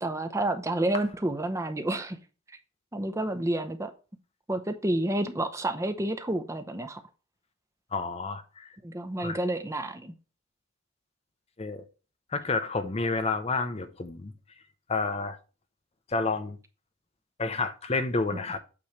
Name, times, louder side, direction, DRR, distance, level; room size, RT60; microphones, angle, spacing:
voice 1, 0.0-2.2 2.9-3.9 4.5-7.0 8.8-10.1, right 1 dB, 15° right, 0.6 m, -29 dB
voice 2, 7.9-8.7 9.2-9.4 11.6-11.8 12.3-14.3 14.9-15.4 16.1-16.6 17.4-18.6, left 3 dB, 30° left, 0.6 m, -30 dB
8.5 x 3.1 x 6.4 m
head